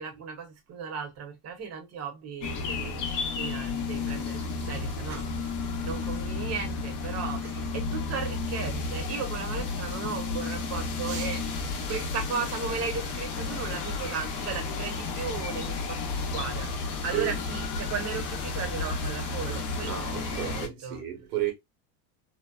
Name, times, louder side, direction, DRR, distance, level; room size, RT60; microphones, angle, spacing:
voice 1, 0.0-4.4 4.6-5.4 5.8-11.4 11.9-16.0 16.3-16.7 17.0-21.0, right 6 dB, 35° right, 0.8 m, -36 dB
sound 1, 2.4-20.7, left 4 dB, 45° left, 0.7 m, -32 dB
voice 2, 19.9-21.5, right 12 dB, 90° right, 1.2 m, -33 dB
2.6 x 2.1 x 2.2 m
supercardioid pair, 125°, 46 cm